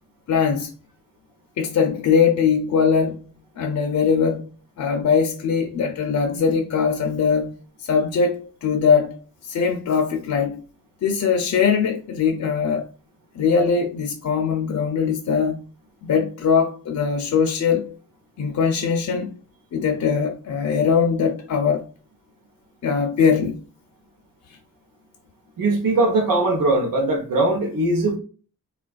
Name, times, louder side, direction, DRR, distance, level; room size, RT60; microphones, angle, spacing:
voice 1, 0.3-0.7 1.6-3.2 3.6-4.5 4.8-10.6 11.0-12.9 13.4-15.6 16.0-17.9 18.4-19.4 19.7-21.9 22.8-23.6, left 6 dB, 55° left, 0.4 m, -21 dB
voice 2, 25.6-28.2, right 2 dB, 80° right, 0.8 m, -20 dB
3.3 x 2.3 x 2.3 m
wide cardioid pair, 105°, 33 cm